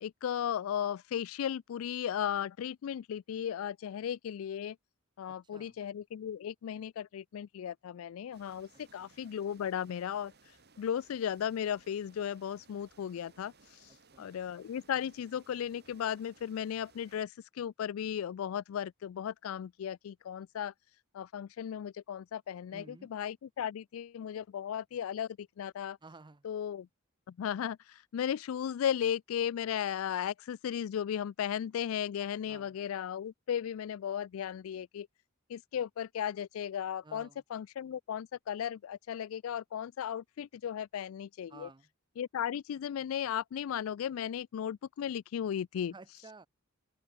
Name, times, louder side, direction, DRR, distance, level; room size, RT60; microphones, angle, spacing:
voice 1, 0.0-4.8 5.2-10.3 10.8-13.5 14.2-20.7 21.1-26.0 26.4-26.9 27.3-35.1 35.5-41.7 42.2-45.9, left 9 dB, 85° left, 0.3 m, -36 dB
voice 2, 5.3-5.8 9.0-9.1 13.9-14.4 22.7-23.1 26.0-26.5 32.5-32.8 37.0-37.4 41.5-41.9 45.9-46.5, right 3 dB, 20° right, 0.6 m, -53 dB
sound 1, 8.3-17.2, right 4 dB, 55° right, 5.3 m, -63 dB
open air
head